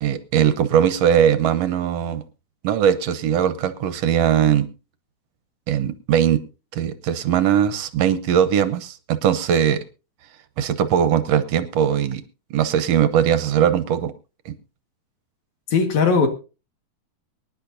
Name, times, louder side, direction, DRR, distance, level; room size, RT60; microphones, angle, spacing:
voice 1, 0.0-2.2 2.6-4.7 5.7-6.4 6.7-9.8 10.6-12.2 12.5-14.1 14.5-14.6, right 9 dB, 65° right, 11 dB, 1.8 m, -20 dB
voice 2, 15.7-16.3, left 5 dB, 70° left, 5 dB, 3.0 m, -18 dB
24.0 x 10.5 x 2.7 m, 0.32 s
omnidirectional pair, 3.5 m